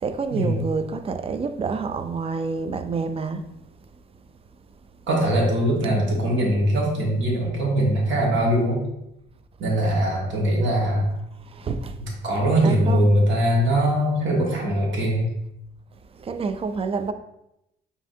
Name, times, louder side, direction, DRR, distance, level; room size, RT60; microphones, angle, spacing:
voice 1, 0.0-3.4 11.5-12.0 12.6-13.1 16.2-17.1, right 4 dB, 30° right, 0.4 m, -28 dB
voice 2, 5.1-8.8 9.6-11.1 12.0-15.3, right 1 dB, 70° right, 1.4 m, -21 dB
5.6 x 2.7 x 2.6 m
cardioid pair, 90°, 20 cm